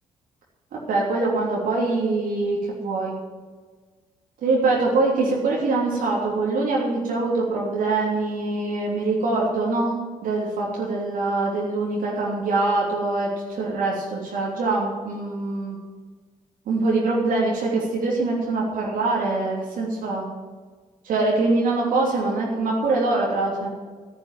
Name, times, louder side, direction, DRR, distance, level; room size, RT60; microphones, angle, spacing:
voice 1, 0.9-3.1 4.4-15.8 16.7-20.2 21.0-23.7, right 3 dB, 75° right, -4 dB, 3.1 m, -23 dB
10.5 x 8.6 x 9.2 m, 1.4 s
supercardioid pair, 60°, 14 cm